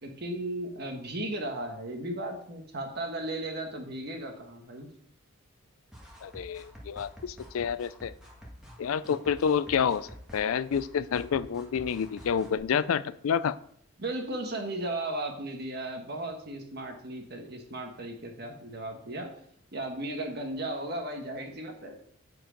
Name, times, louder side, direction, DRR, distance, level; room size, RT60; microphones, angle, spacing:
voice 1, 0.0-4.9 14.0-19.3 19.7-22.0, right 1 dB, 50° right, 3 dB, 1.3 m, -36 dB
sound 1, 5.9-12.6, equal, 5° right, 1.7 m, -49 dB
voice 2, 6.2-8.1 8.8-10.1 10.3-13.5, left 7 dB, 85° left, 15 dB, 0.4 m, -28 dB
7.6 x 4.6 x 5.1 m, 0.65 s
head